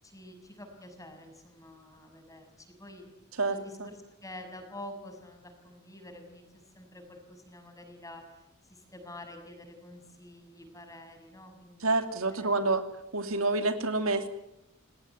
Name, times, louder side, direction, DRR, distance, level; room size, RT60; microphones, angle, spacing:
voice 1, 0.0-3.0 3.5-11.9 12.3-12.8, left 1 dB, 15° left, 4 dB, 6.4 m, -48 dB
voice 2, 3.4-3.9 11.8-12.8 13.1-14.3, right 2 dB, 90° right, 7 dB, 2.7 m, -28 dB
29.5 x 18.5 x 9.5 m, 0.89 s
head